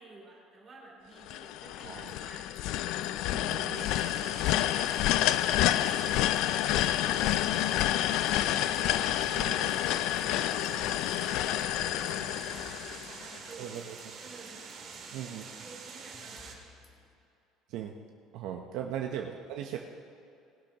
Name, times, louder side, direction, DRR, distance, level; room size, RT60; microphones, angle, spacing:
voice 1, 0.0-2.5 3.4-5.1 5.7-10.1 10.4-13.8 14.2-14.6 15.3-16.6 18.6-18.8, right 3 dB, 20° right, -3 dB, 3.2 m, -52 dB
sound 1, 1.3-13.4, left 13 dB, 60° left, 0.3 m, -29 dB
sound 2, 1.8-2.6 2.9-3.1 3.4-6.1 6.4-6.9 7.3-10.7 11.1-17.1, left 3 dB, 20° left, 1.3 m, -60 dB
voice 2, 3.3-3.9 9.3-9.5 11.5-11.6 13.6-13.9 15.1-15.4 17.7-17.9 18.3-19.8, right 9 dB, 60° right, 2 dB, 0.8 m, -38 dB
sound 3, 3.7-16.5, right 5 dB, 40° right, 2.1 m, -46 dB
19.5 x 12.0 x 2.9 m, 2.6 s
cardioid pair, 170°, 0 cm